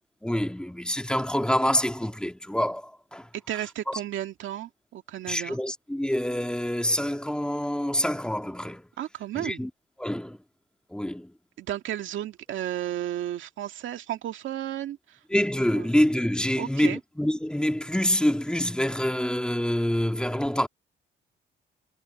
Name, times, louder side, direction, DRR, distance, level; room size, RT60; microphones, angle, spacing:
voice 1, 0.2-3.3 3.9-4.0 5.3-8.9 9.4-9.7 10.0-10.4 10.9-11.3 15.3-20.7, left 1 dB, 5° left, 2.3 m, -26 dB
voice 2, 3.3-5.6 9.0-9.7 11.6-15.2 15.7-15.9 16.6-17.0, right 12 dB, 75° right, 2.1 m, -33 dB
cardioid pair, 90°, 20 cm